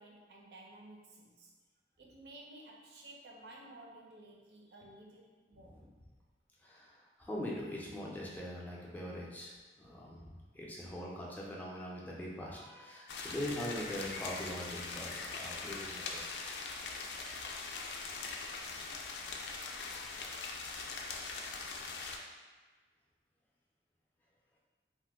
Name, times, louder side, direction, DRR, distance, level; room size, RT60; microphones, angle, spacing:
voice 1, 0.0-1.5 2.0-5.8, right 1 dB, 65° right, -1 dB, 0.5 m, -54 dB
voice 2, 6.6-9.5 9.8-16.5 19.7-20.1, left 1 dB, 10° left, -4 dB, 0.4 m, -42 dB
sound 1, 13.1-22.2, left 4 dB, 75° left, 0.3 m, -42 dB
2.8 x 2.1 x 3.4 m, 1.4 s
head